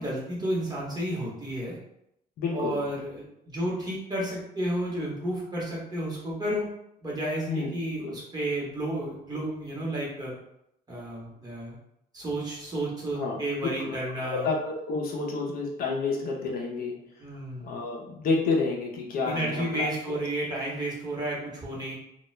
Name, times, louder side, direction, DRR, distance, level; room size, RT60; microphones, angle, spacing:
voice 1, 0.0-1.8 2.5-6.7 7.0-10.3 10.9-11.8 12.1-14.5 17.2-17.8 19.2-21.9, right 1 dB, 25° right, -5 dB, 1.0 m, -32 dB
voice 2, 2.4-2.8 7.5-7.7 8.0-8.2 13.1-13.4 13.8-17.0 17.6-19.9, left 3 dB, 60° left, 0 dB, 0.6 m, -29 dB
2.2 x 2.1 x 3.1 m, 0.78 s
cardioid pair, 110°, 17 cm